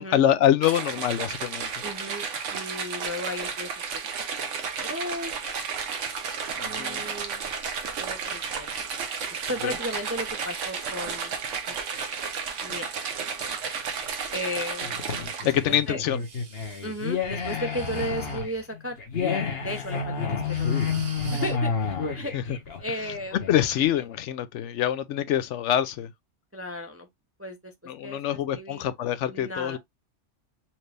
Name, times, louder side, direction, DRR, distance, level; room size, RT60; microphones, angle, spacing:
voice 1, 0.0-1.7 6.6-7.0 9.6-9.7 15.4-16.2 22.3-22.4 23.5-26.1 27.9-29.8, left 11 dB, 80° left, 0.9 m, -25 dB
sound 1, 0.6-15.7, right 6 dB, 90° right, 1.1 m, -33 dB
voice 2, 1.8-4.0 4.6-5.3 6.6-7.5 8.0-8.7 9.3-11.3 11.7-11.8 12.6-12.9 13.4-13.6 14.3-15.0 15.4-15.5 15.9-16.0 16.8-19.0 19.6-20.8 21.3-22.3 22.8-23.4 24.6-24.7 26.5-27.1 27.4-27.7 28.0-28.8 29.3-29.8, left 1 dB, 20° right, 0.4 m, -35 dB
sound 2, 14.8-23.9, left 5 dB, 55° left, 1.2 m, -30 dB
Breathing, 16.1-18.7 19.5-19.9 20.2-21.6, right 4 dB, 55° right, 1.2 m, -39 dB
4.3 x 2.5 x 3.2 m
omnidirectional pair, 1.2 m